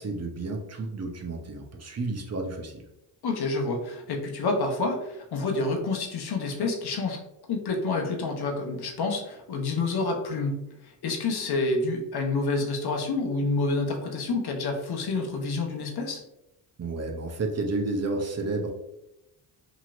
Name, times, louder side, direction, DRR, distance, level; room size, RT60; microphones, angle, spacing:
voice 1, 0.0-2.8 16.8-18.7, right 3 dB, 35° right, 2 dB, 0.7 m, -31 dB
voice 2, 3.2-7.2 7.5-10.5 10.8-16.2, left 3 dB, 55° left, 2 dB, 0.9 m, -28 dB
3.0 x 2.9 x 2.5 m, 0.87 s
supercardioid pair, 60°, 47 cm